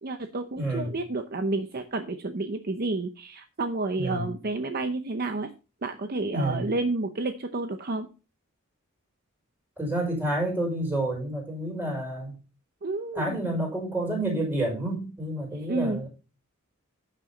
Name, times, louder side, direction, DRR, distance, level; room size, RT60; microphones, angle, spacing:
voice 1, 0.0-5.5 5.8-8.1 12.8-13.4 15.7-16.0, right 2 dB, 45° right, 7 dB, 0.7 m, -30 dB
voice 2, 0.6-1.0 4.0-4.3 6.3-6.6 9.8-12.4 13.1-16.1, right 1 dB, 10° right, -2 dB, 5.3 m, -29 dB
11.5 x 6.7 x 4.0 m, 0.32 s
head